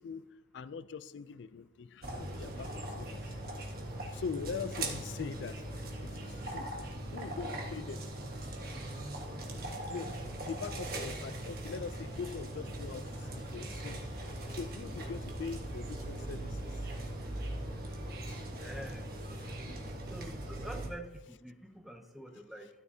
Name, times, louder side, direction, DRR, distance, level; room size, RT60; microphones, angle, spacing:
voice 1, 0.0-3.3 4.1-8.1 8.9-9.1 9.6-10.2 10.4-16.9 17.5-17.8 18.3-18.5 19.4-19.9, left 5 dB, 75° left, 0.4 m, -43 dB
sound 1, 2.0-20.9, right 1 dB, 50° right, 1.5 m, -40 dB
voice 2, 18.6-19.0 20.1-22.7, equal, ahead, 0.7 m, -46 dB
13.0 x 10.5 x 2.8 m
head